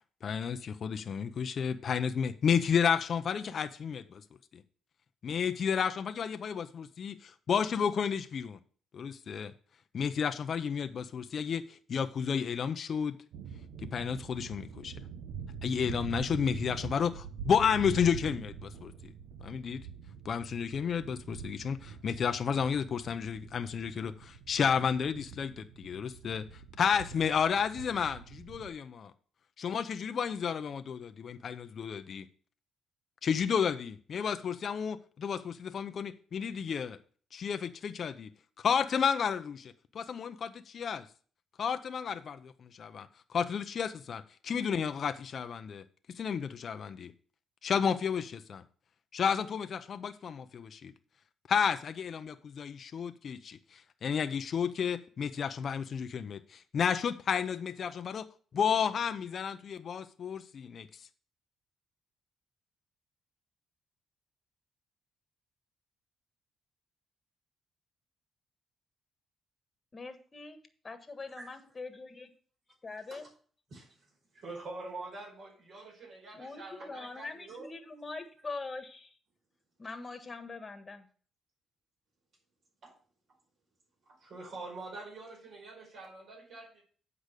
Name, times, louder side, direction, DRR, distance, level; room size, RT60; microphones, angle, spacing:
voice 1, 0.2-4.2 4.5-4.6 5.2-8.6 8.9-9.5 9.9-13.2 13.9-14.9 15.6-18.9 19.4-19.8 20.2-26.4 26.8-29.1 29.6-32.3 33.2-37.0 37.3-38.3 38.6-41.1 41.6-42.5 42.8-43.1 43.3-45.8 46.1-47.1 47.6-48.6 49.1-50.9 51.5-58.3 58.5-60.9, left 7 dB, 55° left, 0.6 m, -32 dB
sound 1, 13.3-28.7, right 7 dB, 85° right, 0.8 m, -44 dB
voice 2, 69.9-70.6 70.8-72.3 72.8-73.3 76.3-79.2 79.8-81.1, left 3 dB, 30° left, 1.4 m, -43 dB
voice 3, 73.7-74.1 74.3-77.7 82.8-82.9 84.0-86.8, right 3 dB, 60° right, 5.0 m, -45 dB
8.2 x 5.0 x 6.5 m
cardioid pair, 90°, 0 cm